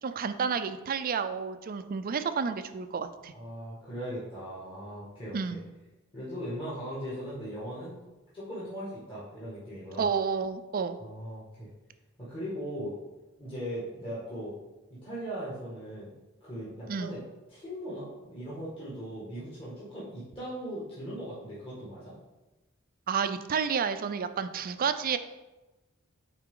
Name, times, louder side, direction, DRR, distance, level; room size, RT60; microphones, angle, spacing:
voice 1, 0.0-3.3 5.3-5.6 10.0-11.0 16.9-17.2 23.1-25.2, right 6 dB, 45° right, 10 dB, 0.4 m, -30 dB
voice 2, 3.3-5.6 6.1-8.0 8.3-10.1 11.0-11.7 12.2-13.0 13.4-14.5 15.0-16.1 16.4-17.2 17.5-22.1, equal, 25° left, -9 dB, 2.0 m, -39 dB
9.2 x 4.1 x 3.8 m, 1.1 s
head